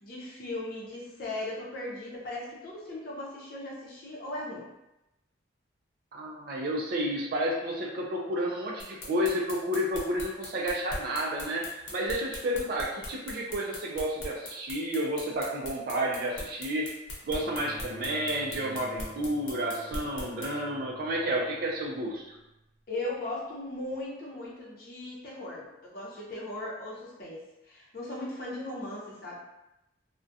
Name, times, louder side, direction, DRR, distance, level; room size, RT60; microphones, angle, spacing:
voice 1, 0.0-4.7 22.9-29.3, left 1 dB, 50° left, -5 dB, 0.7 m, -38 dB
voice 2, 6.1-16.9 17.2-22.4, equal, 55° right, -1 dB, 0.3 m, -31 dB
sound 1, 8.8-20.5, left 1 dB, 85° left, 0.7 m, -39 dB
Bowed string instrument, 17.3-22.8 23.9-24.0, right 1 dB, 5° right, 0.7 m, -48 dB
2.3 x 2.1 x 2.6 m, 0.92 s
head